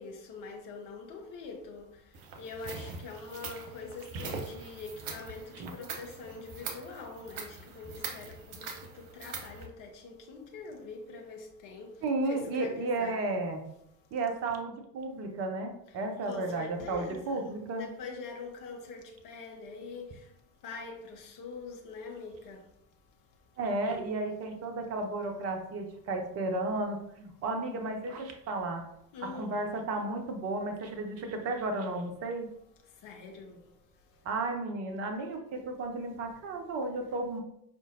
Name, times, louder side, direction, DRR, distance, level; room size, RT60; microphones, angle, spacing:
voice 1, 0.0-2.0 2.4-11.9 12.3-13.2 16.3-17.4 17.8-20.2 20.6-22.6 29.1-29.5 33.0-33.6, left 4 dB, 40° left, 0.9 m, -44 dB
sound 1, 2.1-9.7, right 4 dB, 65° right, 0.8 m, -42 dB
voice 2, 12.0-13.6 14.1-17.9 23.6-28.9 29.2-32.5 34.2-37.4, right 2 dB, 30° right, 0.6 m, -33 dB
5.0 x 2.5 x 2.5 m
figure-of-eight pair, 65°, 50 cm